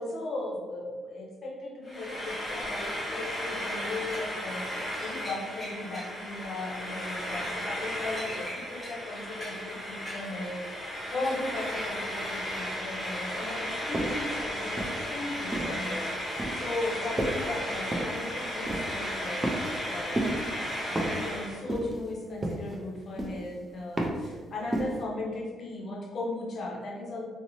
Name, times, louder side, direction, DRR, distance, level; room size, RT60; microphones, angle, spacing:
voice 1, 0.0-27.3, left 2 dB, 50° left, -1 dB, 0.6 m, -37 dB
Frying (food), 1.8-21.6, equal, 5° left, 0.8 m, -35 dB
sound 1, 13.9-14.3 14.8-15.8 16.4-16.7 17.2-17.5 17.9-18.2 18.6-19.0 19.4-19.9 20.2-20.5 21.0-21.3 21.7-22.1 22.4-22.8 23.2-23.5 24.0-24.3 24.7-25.0, right 1 dB, 20° right, 0.4 m, -31 dB
2.7 x 2.0 x 2.9 m, 1.4 s
cardioid pair, 120°, 0 cm